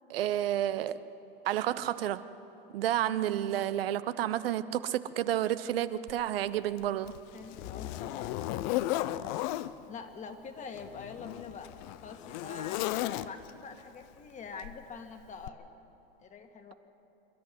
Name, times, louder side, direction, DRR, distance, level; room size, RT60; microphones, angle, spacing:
voice 1, 0.1-1.0 1.4-2.2 2.7-7.1, right 12 dB, 70° right, 13 dB, 0.9 m, -30 dB
Zipper (clothing), 6.1-6.2 6.8-9.7 10.7-13.6 14.6-14.8 15.4-15.5, left 15 dB, 45° left, 0.7 m, -35 dB
voice 2, 7.3-9.3 9.9-11.7 12.0-15.7 16.2-16.7, left 5 dB, 25° left, 6 dB, 2.0 m, -45 dB
26.5 x 11.5 x 9.5 m, 2.9 s
hypercardioid pair, 115°, 31 cm